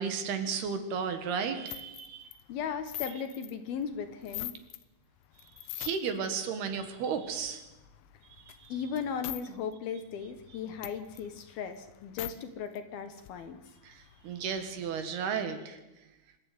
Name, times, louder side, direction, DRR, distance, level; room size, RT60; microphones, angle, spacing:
voice 1, 0.0-2.3 5.7-7.6 13.8-14.0 14.2-15.8, right 6 dB, 65° right, 8 dB, 3.5 m, -33 dB
sound 1, 1.7-4.8 5.2-6.3 6.7-9.4 9.7-9.8 10.1-12.3 12.8-12.9 13.1-15.0, left 15 dB, 85° left, 3.4 m, -44 dB
voice 2, 2.5-4.5 8.7-13.6, left 7 dB, 65° left, 9 dB, 2.9 m, -37 dB
26.0 x 13.5 x 9.5 m, 1.0 s
omnidirectional pair, 5.2 m